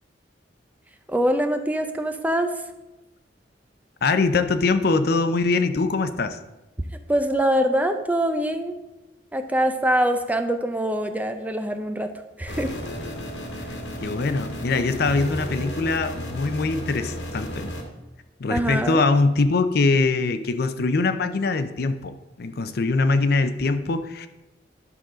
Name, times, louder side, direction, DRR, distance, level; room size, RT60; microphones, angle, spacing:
voice 1, 1.1-2.5 7.1-8.8 9.3-12.1 12.4-12.7 18.5-19.0, right 1 dB, 10° right, 7 dB, 0.5 m, -23 dB
voice 2, 4.0-6.4 14.0-17.7 18.4-24.3, left 3 dB, 60° left, 10 dB, 0.6 m, -23 dB
sound 1, 12.5-17.8, equal, 85° left, 1.7 m, -33 dB
11.0 x 3.9 x 6.2 m, 1.0 s
head